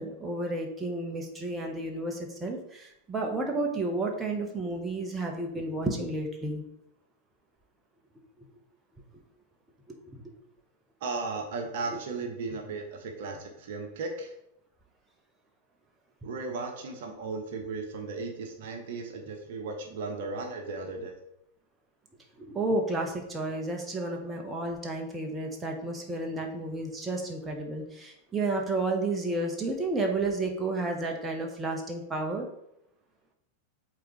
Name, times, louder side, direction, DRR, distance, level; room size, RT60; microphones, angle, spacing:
voice 1, 0.0-6.6 22.4-32.5, right 2 dB, 15° right, 1 dB, 1.1 m, -31 dB
voice 2, 11.0-14.3 16.2-21.2, right 3 dB, 55° right, 3 dB, 1.0 m, -36 dB
8.2 x 3.8 x 3.2 m, 0.78 s
figure-of-eight pair, 90°, 0 cm